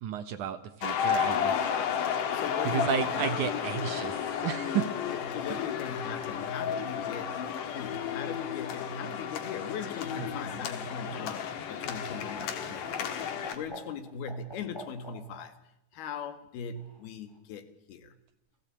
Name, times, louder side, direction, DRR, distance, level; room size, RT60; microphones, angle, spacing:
voice 1, 0.0-1.6 2.6-4.9, right 9 dB, 65° right, 2.2 m, -32 dB
sound 1, 0.8-13.6, left 8 dB, 60° left, 3.2 m, -32 dB
voice 2, 2.3-3.5 5.0-7.4 7.7-13.3 13.5-15.6 15.9-18.1, left 5 dB, 80° left, 3.7 m, -40 dB
Laughter, 10.1-15.5 16.7-17.4, equal, 5° left, 3.9 m, -47 dB
29.5 x 17.5 x 8.7 m
omnidirectional pair, 4.4 m